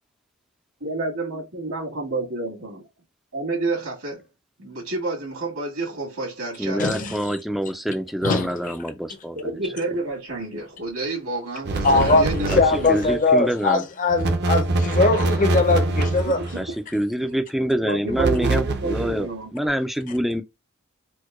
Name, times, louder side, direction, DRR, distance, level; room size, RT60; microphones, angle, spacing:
voice 1, 0.8-2.9 3.3-4.2 4.6-7.2 9.3-13.0 16.0-16.6 17.8-19.5, right 2 dB, 80° right, 2.1 m, -29 dB
voice 2, 6.6-9.5 11.9-12.0 12.5-12.6 12.9-13.8 16.6-19.3 19.5-20.4, equal, ahead, 0.3 m, -26 dB
sound 1, 11.6-13.2 14.1-16.7 18.1-19.3, right 2 dB, 50° right, 0.6 m, -24 dB
voice 3, 11.8-16.4, left 3 dB, 40° left, 0.6 m, -20 dB
4.4 x 2.2 x 2.4 m
head